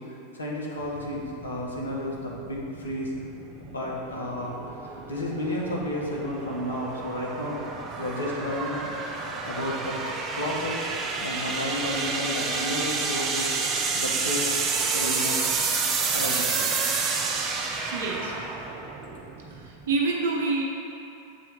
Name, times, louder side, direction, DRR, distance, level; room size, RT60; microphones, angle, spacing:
voice 1, 0.0-3.1 3.6-7.6 8.0-8.9 9.4-10.0 10.4-10.9 11.2-13.5 13.9-14.5 14.9-15.4 16.1-16.6, left 1 dB, 70° left, -3 dB, 1.1 m, -32 dB
sound 1, 0.8-20.0, right 4 dB, 30° right, 0.6 m, -30 dB
voice 2, 17.9-18.3 19.5-20.6, right 3 dB, 60° right, -1 dB, 0.9 m, -27 dB
7.4 x 3.0 x 5.0 m, 2.7 s
figure-of-eight pair, 90°, 0 cm